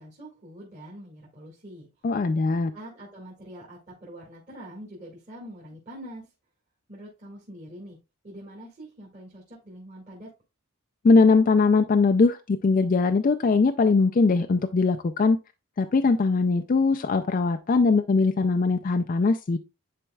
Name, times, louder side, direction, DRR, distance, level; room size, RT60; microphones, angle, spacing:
voice 1, 0.0-1.9 2.7-6.3 6.9-8.0 8.2-10.3, right 1 dB, 35° right, 1.8 m, -44 dB
voice 2, 2.0-2.7 11.0-15.4 15.8-19.6, left 4 dB, 35° left, 0.3 m, -21 dB
10.0 x 4.4 x 2.3 m
head